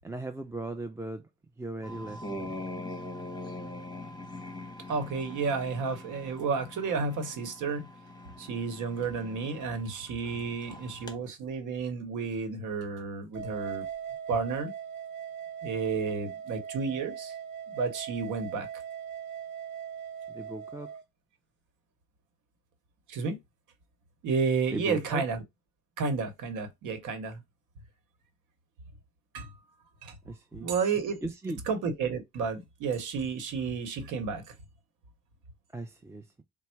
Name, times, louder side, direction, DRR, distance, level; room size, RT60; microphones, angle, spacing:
voice 1, 0.0-1.3 1.6-2.6 20.3-20.9 24.7-25.2 30.2-30.7 31.2-31.6 35.7-36.4, right 2 dB, 10° right, 0.4 m, -38 dB
sound 1, 1.8-11.2, left 1 dB, 15° left, 1.1 m, -43 dB
voice 2, 4.9-7.9 8.4-13.8 14.3-14.7 15.6-17.3 17.7-18.7 23.1-23.4 24.2-25.4 26.0-27.4 29.3-29.6 30.0-30.1 30.6-31.2 31.7-34.4, right 5 dB, 80° right, 1.0 m, -31 dB
sound 2, 13.3-21.0, right 8 dB, 40° right, 1.0 m, -40 dB
4.3 x 2.0 x 4.3 m
cardioid pair, 90°, 30 cm